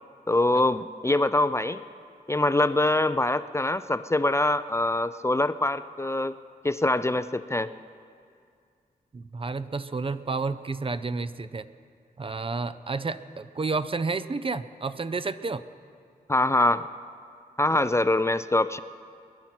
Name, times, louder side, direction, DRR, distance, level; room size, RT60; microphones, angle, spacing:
voice 1, 0.3-1.8 2.3-6.4 6.6-7.7 16.3-16.9 17.6-18.8, left 2 dB, 15° left, 12 dB, 0.4 m, -24 dB
voice 2, 9.1-11.7 12.2-15.6, right 4 dB, 35° right, 13 dB, 0.5 m, -30 dB
21.0 x 10.5 x 6.1 m, 2.3 s
cardioid pair, 65°, 16 cm